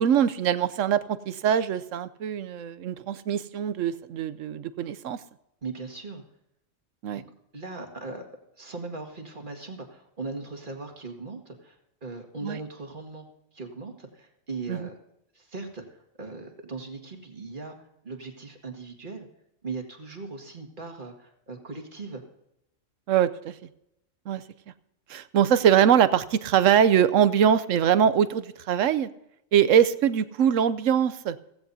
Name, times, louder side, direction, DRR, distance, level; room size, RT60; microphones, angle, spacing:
voice 1, 0.0-5.2 7.0-7.2 12.4-12.6 14.7-14.9 23.1-23.5 24.3-24.4 25.1-29.1 29.5-31.3, right 9 dB, 75° right, 14 dB, 1.0 m, -22 dB
voice 2, 5.6-6.2 7.1-7.2 7.5-8.2 8.6-13.3 13.5-14.9 15.3-19.3 19.6-22.2, right 3 dB, 40° right, 4 dB, 2.1 m, -39 dB
16.5 x 16.0 x 2.7 m, 0.83 s
omnidirectional pair, 1.3 m